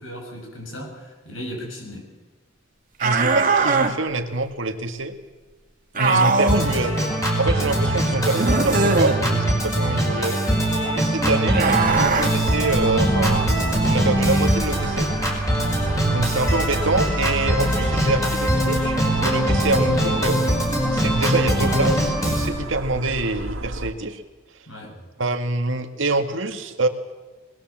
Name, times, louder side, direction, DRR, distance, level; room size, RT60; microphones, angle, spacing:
voice 1, 0.0-2.1 5.9-6.3 24.7-25.0, equal, 80° left, 1 dB, 7.6 m, -36 dB
sound 1, 3.0-3.9 5.9-6.7 8.3-9.2 11.5-12.3, right 4 dB, 40° right, 2.0 m, -20 dB
voice 2, 3.0-5.2 6.0-10.4 10.9-13.5 13.9-15.1 16.1-20.4 20.9-24.2 25.2-26.9, right 2 dB, 70° right, 6 dB, 1.9 m, -25 dB
Organ, 6.5-22.5, right 1 dB, 15° left, 4.8 m, -22 dB
sound 2, 11.8-23.9, right 1 dB, 90° right, 2.7 m, -32 dB
22.5 x 20.5 x 7.4 m, 1.3 s
head